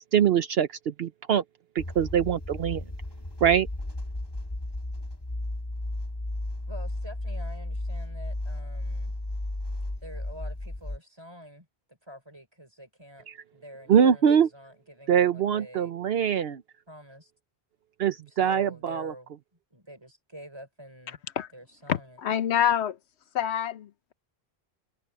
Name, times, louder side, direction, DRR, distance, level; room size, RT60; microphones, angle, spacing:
voice 1, 0.1-1.4 1.7-2.8 3.4-3.7 13.3-13.4 13.9-14.5 15.1-16.6 18.0-19.1, right 8 dB, 70° right, 0.9 m, -23 dB
sound 1, 1.8-11.0, left 1 dB, 25° left, 1.6 m, -34 dB
voice 2, 6.7-9.1 10.0-15.9 16.9-17.3 18.3-19.3 19.7-21.2 21.5-22.2, equal, 25° right, 5.7 m, -47 dB
voice 3, 21.9-23.0 23.3-24.1, left 9 dB, 90° left, 1.1 m, -26 dB
omnidirectional pair, 1.1 m